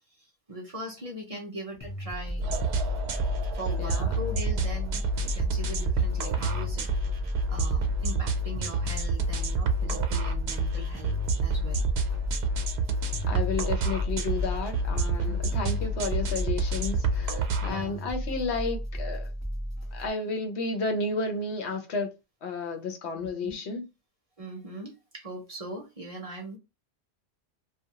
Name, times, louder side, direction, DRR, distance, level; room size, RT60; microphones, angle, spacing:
voice 1, 0.5-2.5 3.5-6.9 7.5-11.8 15.3-15.4 17.6-18.0 23.1-23.5 24.4-26.6, right 1 dB, 40° right, 0.6 m, -40 dB
sound 1, 1.8-20.1, equal, 25° left, 0.4 m, -35 dB
sound 2, 2.4-17.7, right 2 dB, 75° right, 0.8 m, -29 dB
voice 2, 3.8-4.1 13.3-19.3 19.9-22.1 22.4-23.9, left 3 dB, 80° left, 1.0 m, -32 dB
2.5 x 2.3 x 2.8 m
omnidirectional pair, 1.1 m